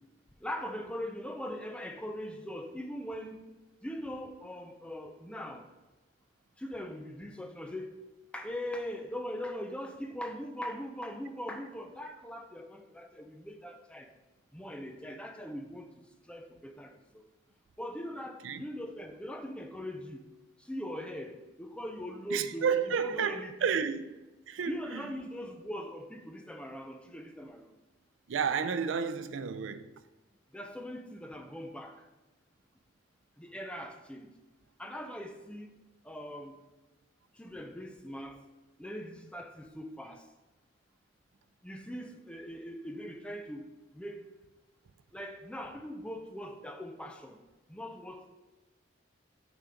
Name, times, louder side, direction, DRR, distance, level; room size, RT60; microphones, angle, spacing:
voice 1, 0.4-3.4 3.8-5.7 6.6-8.0 8.3-14.1 14.5-17.2 17.8-20.3 20.6-22.7 23.0-23.9 24.6-27.7 30.5-32.1 33.4-34.3 34.8-35.7 36.0-36.6 37.3-38.4 38.8-40.2 41.6-43.7 43.9-44.2 45.1-47.4 47.7-48.3, equal, 5° left, 0.5 m, -41 dB
voice 2, 22.3-24.2 24.5-25.1 28.3-29.9, right 6 dB, 85° right, 0.4 m, -31 dB
8.4 x 3.7 x 5.1 m
head